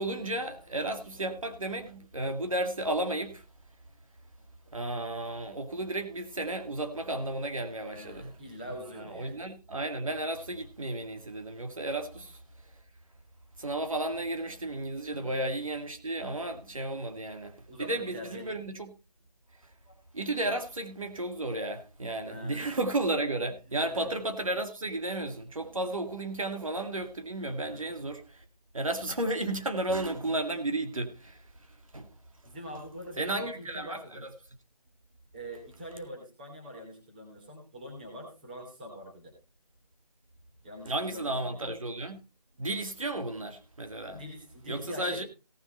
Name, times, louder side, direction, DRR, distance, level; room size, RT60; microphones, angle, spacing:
voice 1, 0.0-3.5 4.7-8.3 9.0-12.4 13.6-18.9 19.6-19.7 20.1-28.4 28.7-32.1 33.2-34.3 40.9-42.2 42.6-44.2 44.7-45.2, right 2 dB, 55° right, 2.0 m, -33 dB
voice 2, 0.7-1.4 4.4-4.8 7.8-9.5 12.1-12.2 15.1-15.3 17.7-18.6 19.9-20.0 22.2-22.8 23.7-24.2 25.6-25.9 26.7-26.8 27.7-27.9 32.4-34.3 35.3-39.3 40.6-41.8 44.1-45.3, equal, 15° right, 2.7 m, -44 dB
17.5 x 6.8 x 4.3 m
figure-of-eight pair, 175°, 20 cm